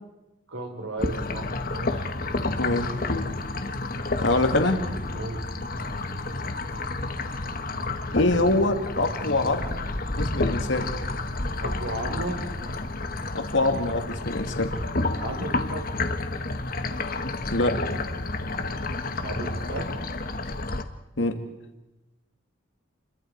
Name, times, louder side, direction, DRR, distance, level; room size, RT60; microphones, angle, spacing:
voice 1, 0.5-2.1 5.1-5.4 11.6-12.4 15.2-15.9 19.0-19.9, right 1 dB, 85° right, 4 dB, 4.2 m, -35 dB
sound 1, 1.0-20.8, left 2 dB, 45° left, 1.2 m, -30 dB
sound 2, 2.0-15.2, equal, 55° right, 4.0 m, -45 dB
voice 2, 2.6-3.0 4.2-4.9 8.1-9.8 10.1-10.9 13.3-14.7 17.5-17.9 21.2-21.4, left 2 dB, 70° left, 6 dB, 2.1 m, -24 dB
29.0 x 23.0 x 4.7 m, 0.99 s
head